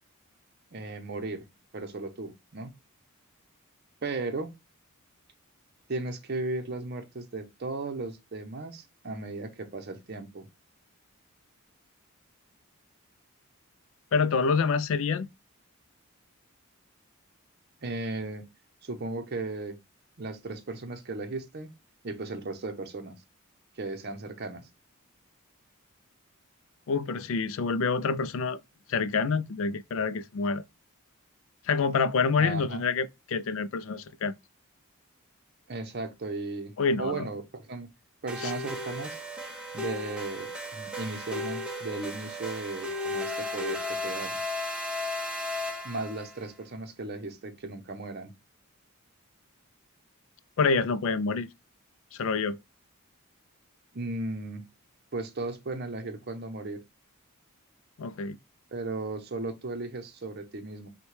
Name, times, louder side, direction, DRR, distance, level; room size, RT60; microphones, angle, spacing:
voice 1, 0.7-1.5 1.7-2.7 4.0-4.6 5.9-10.5 17.8-18.5 18.8-19.8 20.2-21.7 22.0-23.2 23.8-24.7 32.4-32.8 35.7-37.9 38.2-39.2 39.7-44.4 45.8-48.3 53.9-54.6 55.1-56.8 58.7-60.9, right 2 dB, 45° right, 0.7 m, -36 dB
voice 2, 14.1-15.3 26.9-28.6 28.9-30.6 31.7-34.3 36.8-37.3 38.4-38.5 50.6-51.5 52.1-52.6 58.0-58.4, left 5 dB, 65° left, 0.4 m, -27 dB
sound 1, 38.3-46.4, left 1 dB, 5° right, 0.7 m, -35 dB
5.9 x 2.2 x 3.1 m
head